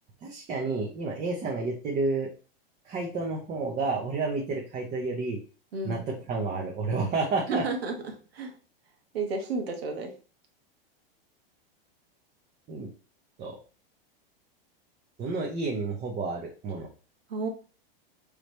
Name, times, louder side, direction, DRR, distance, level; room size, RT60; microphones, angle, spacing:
voice 1, 0.2-2.3 2.9-5.4 5.8-6.0 6.3-7.6 12.7-12.9 13.4-13.6 15.2-16.9, right 3 dB, 25° right, -1 dB, 0.8 m, -30 dB
voice 2, 5.7-6.0 7.5-8.5 9.1-10.1 17.3-17.5, right 3 dB, 90° right, 3 dB, 1.3 m, -32 dB
4.8 x 3.3 x 3.1 m, 0.37 s
supercardioid pair, 140°, 30 cm